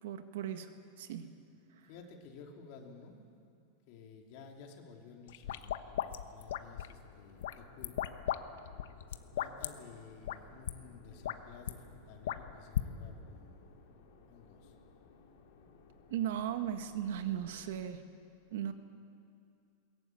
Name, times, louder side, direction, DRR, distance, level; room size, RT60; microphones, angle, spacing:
voice 1, 0.0-1.3 1.8-1.9 16.1-18.0 18.5-18.7, right 10 dB, 65° right, 8 dB, 1.6 m, -37 dB
voice 2, 1.9-3.3 3.9-7.9 9.2-13.8 14.3-14.7, left 5 dB, 40° left, 2 dB, 2.9 m, -53 dB
sound 1, 5.3-7.0 7.4-8.4 8.7-9.7 10.2-10.4 10.7-10.8 11.1-11.7 12.2-12.9, left 11 dB, 75° left, 1.0 m, -36 dB
sound 2, 6.8-17.8, left 3 dB, 60° left, 3.0 m, -60 dB
22.0 x 19.5 x 9.2 m, 2.5 s
supercardioid pair, 180°, 0 cm